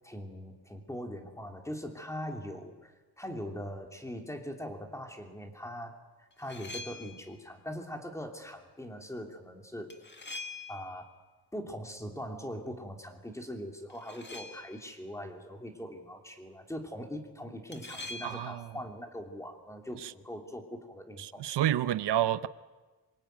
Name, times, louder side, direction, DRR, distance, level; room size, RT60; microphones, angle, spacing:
voice 1, 0.0-9.9 10.7-11.1 11.5-21.5, equal, 5° left, 3.0 m, -41 dB
sound 1, 6.3-7.3 9.9-11.1 13.9-14.9 17.7-18.7, left 3 dB, 25° left, 2.2 m, -44 dB
voice 2, 18.2-18.7 20.0-20.1 21.2-22.5, right 12 dB, 85° right, 0.9 m, -29 dB
26.0 x 23.5 x 9.3 m
wide cardioid pair, 155°, 40 cm